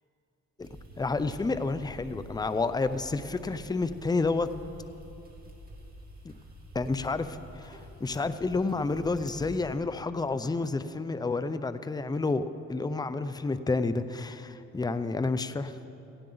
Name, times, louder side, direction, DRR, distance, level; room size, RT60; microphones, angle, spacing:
sound 1, 0.6-9.8, equal, 30° right, 2.8 m, -48 dB
voice 1, 1.0-4.5 6.2-6.3 6.8-15.8, left 3 dB, 15° left, 12 dB, 0.6 m, -30 dB
18.0 x 16.0 x 4.0 m, 2.8 s
cardioid pair, 90°, 30 cm